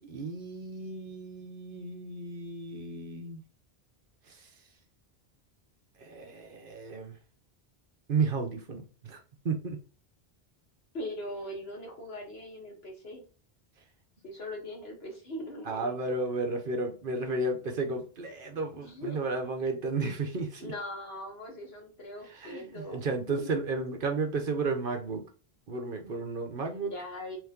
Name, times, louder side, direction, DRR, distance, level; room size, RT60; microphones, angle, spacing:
voice 1, 0.0-3.4 4.3-4.5 6.0-7.2 8.1-9.8 15.6-20.7 22.2-25.3 25.7-26.9, right 3 dB, 60° right, 1.0 m, -33 dB
voice 2, 10.9-13.2 14.2-16.1 18.7-19.2 20.6-23.5 26.8-27.4, left 1 dB, 75° left, 1.6 m, -40 dB
3.1 x 3.1 x 3.5 m
omnidirectional pair, 1.0 m